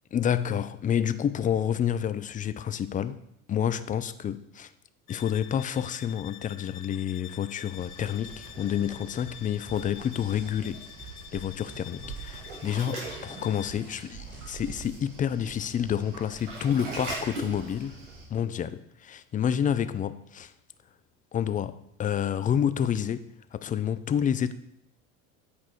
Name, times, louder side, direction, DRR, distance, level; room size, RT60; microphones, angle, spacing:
voice 1, 0.1-3.2 3.5-4.7 5.1-10.8 11.3-20.5 21.3-24.5, left 9 dB, 20° left, 0.4 m, -29 dB
sound 1, 5.1-13.9, left 13 dB, 90° left, 0.6 m, -47 dB
Waves surf, 7.7-18.2, right 2 dB, 65° right, 3.0 m, -42 dB
sound 2, 9.7-15.0, right 5 dB, 25° right, 3.5 m, -49 dB
8.1 x 5.1 x 4.4 m
hypercardioid pair, 75°, 43 cm